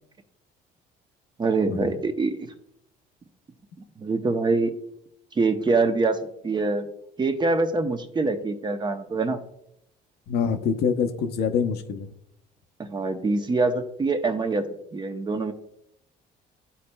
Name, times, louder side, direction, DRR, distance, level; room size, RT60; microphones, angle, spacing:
voice 1, 1.4-2.5 4.0-4.7 5.4-6.9 7.2-9.4 12.8-14.6 14.9-15.5, right 3 dB, 25° right, 7 dB, 0.7 m, -24 dB
voice 2, 10.3-12.1, left 6 dB, 75° left, 9 dB, 0.6 m, -25 dB
11.5 x 4.2 x 2.2 m, 0.76 s
cardioid pair, 110°, 17 cm